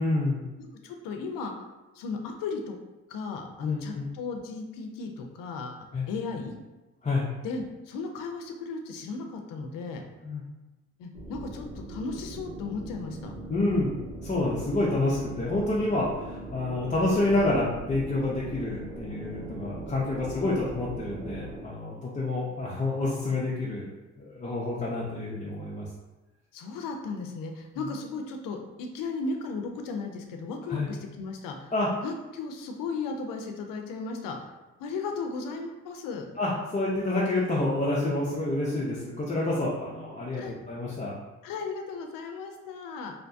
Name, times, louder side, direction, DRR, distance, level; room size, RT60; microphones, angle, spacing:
voice 1, 0.0-0.5 3.6-4.0 5.9-6.1 7.0-7.3 10.2-10.4 13.5-23.9 24.2-25.9 27.8-27.9 30.7-30.9 31.7-31.9 36.4-41.1, left 2 dB, 25° left, -6 dB, 0.6 m, -28 dB
voice 2, 0.6-1.5 1.9-2.8 3.1-6.6 7.4-10.0 11.0-13.3 20.1-20.6 26.5-31.7 32.0-34.4 34.8-36.3 40.3-40.6 41.4-43.1, left 4 dB, 75° left, 4 dB, 0.5 m, -36 dB
sound 1, 11.1-21.6, right 1 dB, 85° right, 0.8 m, -40 dB
2.8 x 2.2 x 2.6 m, 1.1 s
supercardioid pair, 65°, 33 cm